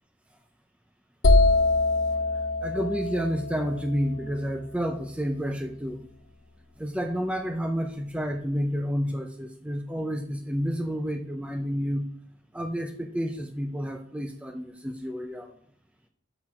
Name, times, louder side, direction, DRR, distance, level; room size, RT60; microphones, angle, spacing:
sound 1, 1.2-5.0, left 2 dB, 75° left, 0.9 m, -24 dB
voice 1, 2.3-6.0 6.8-12.1 12.5-15.5, equal, 5° right, 4 dB, 0.5 m, -30 dB
6.8 x 5.8 x 5.9 m, 0.65 s
head